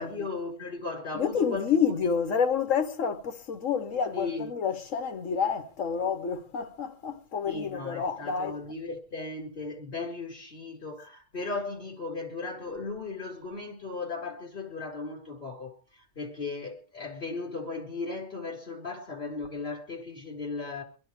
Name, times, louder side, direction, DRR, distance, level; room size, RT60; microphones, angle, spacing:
voice 1, 0.0-1.8 4.1-4.5 7.5-20.8, left 3 dB, 45° left, 4.8 m, -36 dB
voice 2, 1.1-8.6, left 6 dB, 80° left, 1.5 m, -29 dB
25.0 x 10.5 x 4.8 m
omnidirectional pair, 1.3 m